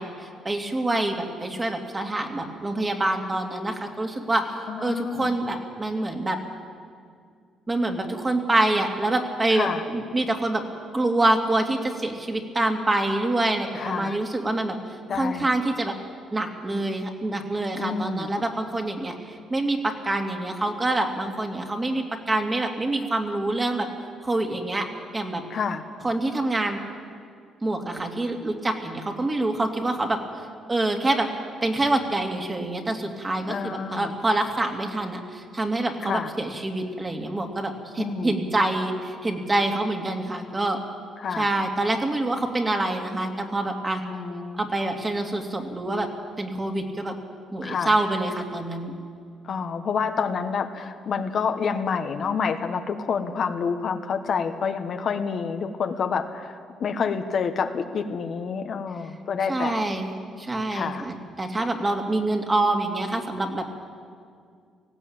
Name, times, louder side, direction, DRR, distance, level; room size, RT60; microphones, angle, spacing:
voice 1, 0.0-6.4 7.7-10.6 10.9-14.8 15.1-15.9 16.3-23.9 24.2-24.9 25.1-25.4 26.0-26.8 27.6-30.2 30.7-31.3 31.6-40.8 41.4-44.0 44.6-46.1 46.4-47.2 47.5-48.9 59.5-63.7, right 2 dB, 25° right, 3 dB, 2.6 m, -26 dB
voice 2, 4.7-5.3 9.5-9.8 13.7-14.2 15.1-15.6 17.8-18.3 25.5-25.8 33.5-34.1 36.0-36.3 38.0-38.3 41.2-41.5 44.0-44.6 47.6-47.9 49.4-56.5 56.8-59.8 60.7-61.0, left 6 dB, 55° left, 6 dB, 1.3 m, -28 dB
18.5 x 16.0 x 8.9 m, 2.2 s
cardioid pair, 90°, 0 cm